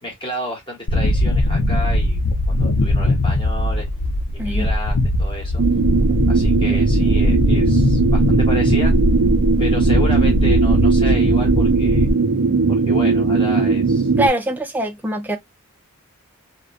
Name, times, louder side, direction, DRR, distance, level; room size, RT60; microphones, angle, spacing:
voice 1, 0.0-2.2 2.5-3.9 4.3-5.6 6.3-8.9 9.6-12.1 12.7-14.1, equal, 20° left, 1.1 m, -31 dB
sound 1, 0.9-12.1, left 1 dB, 85° left, 0.6 m, -20 dB
sound 2, 5.6-14.3, right 4 dB, 80° right, 0.5 m, -18 dB
voice 2, 14.2-15.4, right 1 dB, 10° right, 0.4 m, -22 dB
2.5 x 2.1 x 2.4 m
head